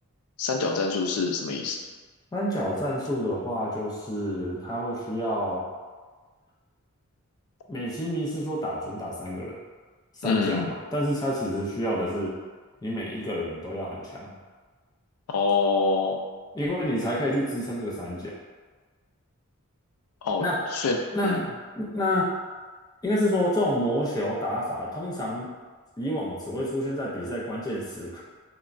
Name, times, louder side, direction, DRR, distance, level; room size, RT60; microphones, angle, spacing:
voice 1, 0.4-1.8 10.2-10.7 15.3-16.2 20.2-21.5, left 4 dB, 85° left, 2 dB, 0.3 m, -26 dB
voice 2, 2.3-5.6 7.7-9.6 10.2-12.4 12.8-14.3 16.5-18.4 20.4-20.6 21.1-22.3 23.0-25.5 26.0-28.2, equal, 15° left, -5 dB, 0.4 m, -28 dB
3.0 x 2.2 x 2.4 m, 1.4 s
head